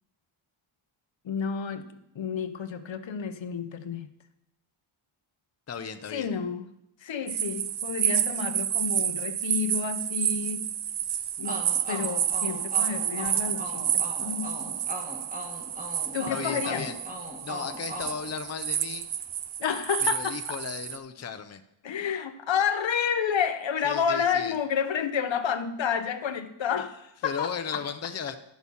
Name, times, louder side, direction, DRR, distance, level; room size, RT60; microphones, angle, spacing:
voice 1, 1.2-4.1 6.1-6.7 7.0-10.7 11.4-11.6 11.9-14.8 16.1-16.9 19.6-20.6 21.8-27.8, left 7 dB, 65° left, 10 dB, 0.8 m, -30 dB
voice 2, 5.7-6.3 16.3-17.0 17.4-19.1 20.0-21.6 23.8-24.5 27.2-28.4, left 6 dB, 30° left, 8 dB, 0.6 m, -35 dB
sound 1, 7.3-21.0, right 10 dB, 55° right, 0.6 m, -30 dB
sound 2, 11.4-19.0, equal, 15° right, 1.8 m, -39 dB
11.5 x 6.4 x 5.4 m, 0.80 s
wide cardioid pair, 115°, 49 cm